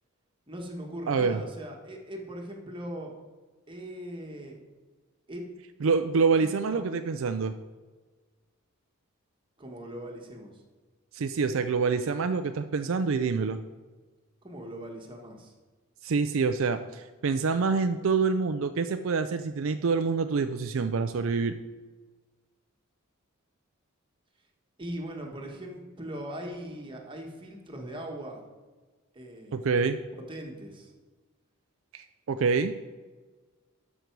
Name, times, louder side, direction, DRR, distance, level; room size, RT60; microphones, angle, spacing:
voice 1, 0.5-3.1 3.7-4.6 5.3-5.4 6.4-6.9 9.6-10.5 14.4-15.5 24.8-28.4 29.1-29.7 30.1-30.9, right 1 dB, 25° right, 1 dB, 1.4 m, -40 dB
voice 2, 1.1-1.4 5.8-7.5 11.1-13.6 16.0-21.6 29.5-30.0 31.9-32.7, right 5 dB, 65° right, 9 dB, 0.4 m, -26 dB
12.0 x 6.3 x 4.6 m, 1.3 s
head